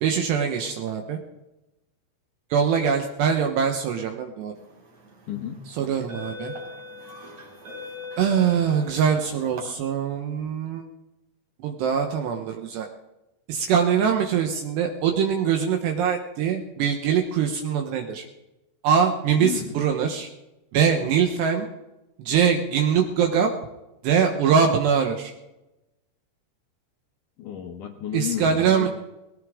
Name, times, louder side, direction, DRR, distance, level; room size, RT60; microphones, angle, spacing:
voice 1, 0.0-1.2 2.5-4.5 5.7-6.5 8.2-10.8 11.6-12.9 13.5-18.2 18.8-20.3 20.7-21.7 22.3-23.5 24.0-25.3 28.1-28.9, right 7 dB, 75° right, 4 dB, 3.1 m, -23 dB
sound 1, 4.8-5.1 5.8-9.6, left 2 dB, 40° right, 4.2 m, -40 dB
voice 2, 5.3-5.6 19.4-19.8 27.4-28.9, left 10 dB, 75° left, 3 dB, 1.9 m, -32 dB
19.5 x 17.5 x 3.7 m, 0.96 s
omnidirectional pair, 5.2 m